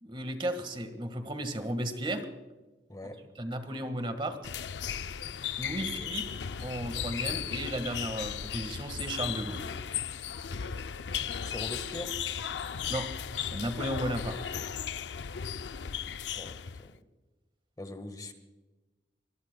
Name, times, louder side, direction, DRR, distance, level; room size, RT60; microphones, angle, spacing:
voice 1, 0.0-2.2 3.4-4.4 5.6-6.2 6.6-9.6 12.9-13.1 13.4-14.4, right 1 dB, 30° right, 1.6 m, -34 dB
voice 2, 2.9-3.3 6.0-6.1 11.4-12.2 16.3-17.0 17.8-18.3, left 1 dB, 20° left, 1.5 m, -42 dB
sound 1, 4.4-16.9, left 8 dB, 80° left, 0.5 m, -36 dB
24.5 x 22.5 x 2.3 m
head